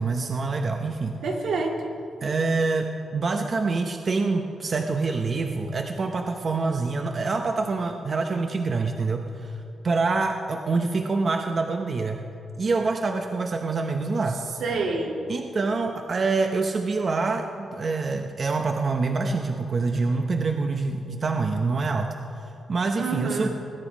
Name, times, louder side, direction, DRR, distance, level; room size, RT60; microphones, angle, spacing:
voice 1, 0.0-1.2 2.2-12.2 12.6-14.4 15.3-23.5, right 3 dB, 45° right, 4 dB, 0.8 m, -26 dB
voice 2, 1.2-2.0 14.6-15.2 23.0-23.5, right 3 dB, 85° right, 0 dB, 2.0 m, -27 dB
21.0 x 9.8 x 5.1 m, 2.6 s
cardioid pair, 110°, 0 cm